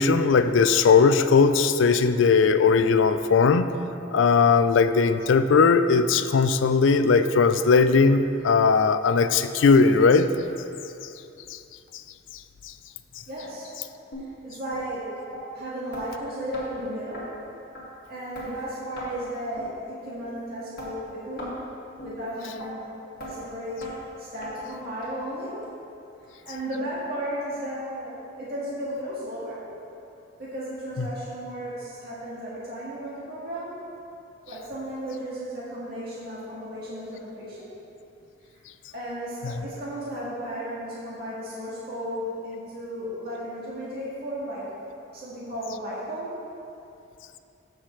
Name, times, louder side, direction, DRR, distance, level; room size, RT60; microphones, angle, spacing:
voice 1, 0.0-3.7 4.1-10.3 11.5-11.6, left 5 dB, 75° left, 11 dB, 0.4 m, -19 dB
voice 2, 13.3-13.7 14.4-15.2 15.5-17.3 18.1-21.6 22.0-22.9 23.2-23.9 24.2-25.6 26.3-29.7 30.4-33.8 34.4-37.8 38.9-44.7 45.1-46.4, equal, 55° right, -8 dB, 1.7 m, -34 dB
sound 1, 14.1-14.3 14.7-14.8 15.3-15.4 15.9-16.1 16.5-16.7 17.1-17.2 17.7-17.8 18.3-18.5 19.0-19.1 19.6-19.7 20.2-20.3 20.8-20.9 21.4-21.6 22.0-22.1 22.6-22.7 23.2-23.3 23.8-23.9 24.4-24.5 25.0-25.1 25.6-25.7 26.2-26.3 26.8-26.9, equal, 55° left, 2.1 m, -38 dB
14.5 x 5.9 x 3.2 m, 2.7 s
head